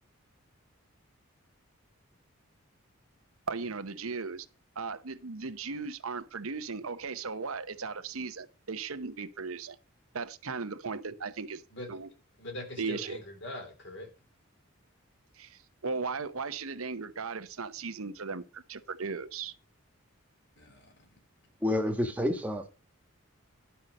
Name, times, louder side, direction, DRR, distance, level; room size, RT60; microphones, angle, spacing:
voice 1, 3.5-4.5 4.8-9.8 10.1-11.6 11.9-12.1 12.8-13.2 15.4-19.5, right 4 dB, 80° right, 1.0 m, -37 dB
voice 2, 11.7-12.0 12.4-14.1 20.6-21.2, left 1 dB, 55° left, 3.0 m, -43 dB
voice 3, 21.6-22.9, left 1 dB, 5° right, 1.5 m, -29 dB
11.5 x 5.7 x 6.5 m
head